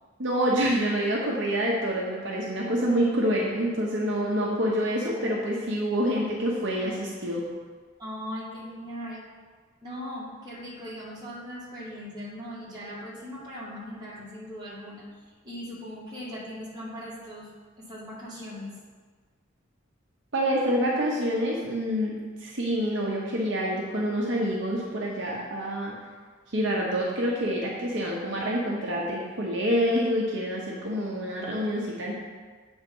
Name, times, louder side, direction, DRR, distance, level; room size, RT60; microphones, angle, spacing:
voice 1, 0.2-7.4 20.3-22.1 22.4-25.9 26.5-32.2, equal, 65° right, -3 dB, 0.9 m, -27 dB
voice 2, 8.0-9.3 9.8-15.1 15.4-17.5 17.8-18.7, equal, 20° right, -8 dB, 1.9 m, -39 dB
7.9 x 3.6 x 5.4 m, 1.5 s
head